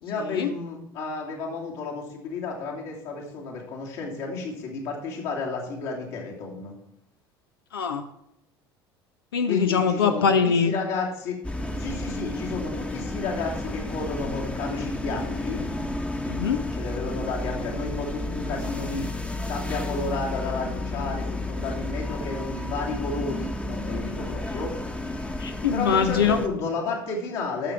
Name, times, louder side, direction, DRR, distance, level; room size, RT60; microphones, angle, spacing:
voice 1, 0.0-6.8 9.4-11.4 11.8-15.6 16.7-19.1 19.5-24.8 25.7-27.7, left 4 dB, 60° left, -2 dB, 2.9 m, -32 dB
voice 2, 7.7-8.1 9.3-10.7 16.3-16.7 25.4-26.4, left 6 dB, 75° left, 8 dB, 0.7 m, -23 dB
sound 1, 11.4-26.5, left 1 dB, 10° left, 1.1 m, -32 dB
12.5 x 7.1 x 4.6 m, 0.81 s
figure-of-eight pair, 65°, 12 cm